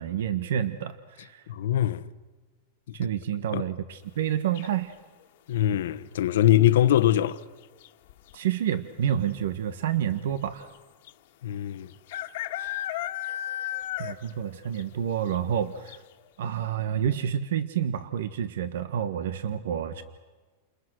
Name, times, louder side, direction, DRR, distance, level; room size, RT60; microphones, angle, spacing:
voice 1, 0.0-1.4 2.9-4.9 8.3-10.7 14.0-16.0 16.4-20.0, right 9 dB, 80° right, 1.4 m, -29 dB
voice 2, 1.5-2.0 3.5-3.6 5.5-7.4 11.4-11.9 12.6-12.7, left 12 dB, 80° left, 1.1 m, -22 dB
sound 1, 4.6-5.0 6.8-7.2 7.5-7.6 7.8-8.4 9.1-9.2 9.4-9.5 11.1-11.2 12.1-14.4 14.8-14.9 15.3-15.4 15.9-16.0, left 13 dB, 60° left, 1.7 m, -33 dB
30.0 x 28.0 x 6.3 m
supercardioid pair, 155°, 0 cm